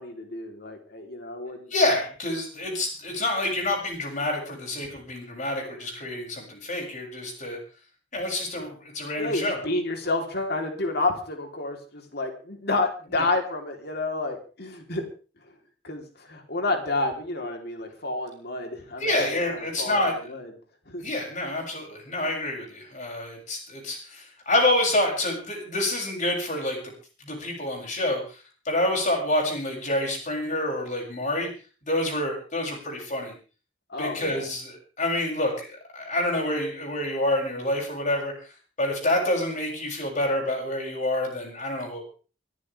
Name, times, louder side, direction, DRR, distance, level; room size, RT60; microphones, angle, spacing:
voice 1, 0.0-1.7 9.2-15.1 15.8-20.0 20.3-20.5 20.9-21.0 33.9-34.4, left 2 dB, 60° left, 3 dB, 3.6 m, -30 dB
voice 2, 1.7-7.6 8.1-9.6 13.1-13.3 19.0-20.1 21.0-26.8 27.2-28.4 28.7-31.5 31.9-33.3 34.0-38.3 38.8-42.0, left 1 dB, 45° left, 1 dB, 7.2 m, -27 dB
24.0 x 15.0 x 3.5 m, 0.38 s
head